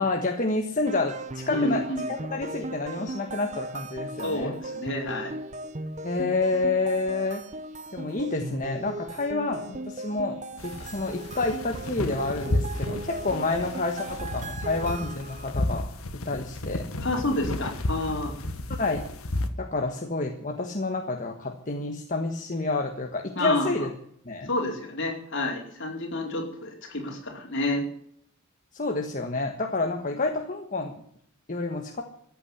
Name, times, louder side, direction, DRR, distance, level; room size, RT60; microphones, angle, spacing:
voice 1, 0.0-1.8 2.1-4.5 6.0-7.4 7.9-10.4 10.6-15.9 16.2-16.8 18.8-19.0 19.6-23.9 24.2-24.5 28.7-30.9 31.5-32.0, left 3 dB, 35° left, 3 dB, 1.4 m, -29 dB
sound 1, 0.9-15.6, right 2 dB, 35° right, 0.9 m, -37 dB
voice 2, 1.5-2.1 4.2-5.3 17.0-18.3 23.3-23.7 24.5-27.8, left 2 dB, 55° left, 0 dB, 4.6 m, -29 dB
sound 2, 10.6-19.5, left 1 dB, 75° left, 1.7 m, -32 dB
14.5 x 8.7 x 9.8 m, 0.66 s
head